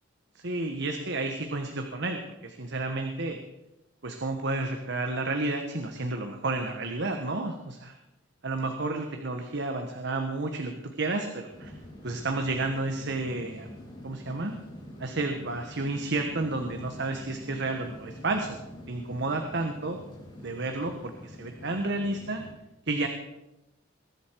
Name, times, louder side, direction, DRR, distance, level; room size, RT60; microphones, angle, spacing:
voice 1, 0.3-3.4 4.0-8.0 8.4-11.7 12.0-13.7 14.0-14.5 15.0-20.0 20.4-22.4 22.8-23.1, right 2 dB, 60° right, 5 dB, 1.3 m, -31 dB
sound 1, 11.5-22.5, left 1 dB, 25° left, 5.5 m, -46 dB
21.0 x 11.0 x 4.7 m, 0.93 s
head